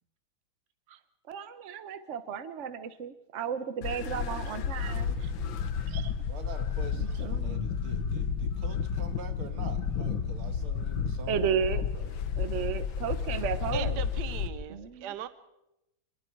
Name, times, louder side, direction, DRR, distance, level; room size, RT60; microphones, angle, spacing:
voice 1, 1.3-5.3 5.9-6.1 7.0-7.6 11.3-11.8 12.4-13.9 14.7-15.1, right 7 dB, 45° right, 11 dB, 1.2 m, -34 dB
sound 1, 3.8-14.5, left 6 dB, 70° left, 1.9 m, -31 dB
voice 2, 6.3-12.1 12.6-12.7, right 6 dB, 85° right, 7 dB, 2.5 m, -46 dB
voice 3, 13.7-15.3, right 7 dB, 60° right, 13 dB, 1.3 m, -37 dB
27.0 x 22.0 x 4.6 m, 0.87 s
omnidirectional pair, 2.2 m